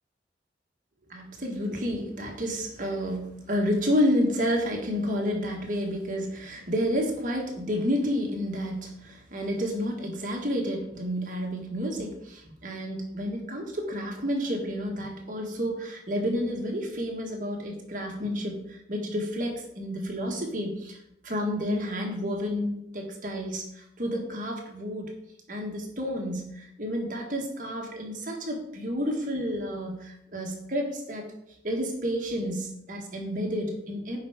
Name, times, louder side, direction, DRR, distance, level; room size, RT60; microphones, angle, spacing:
voice 1, 1.1-25.1 25.5-31.3 31.6-34.2, equal, 50° right, 1 dB, 1.6 m, -30 dB
9.5 x 4.4 x 5.0 m, 0.78 s
head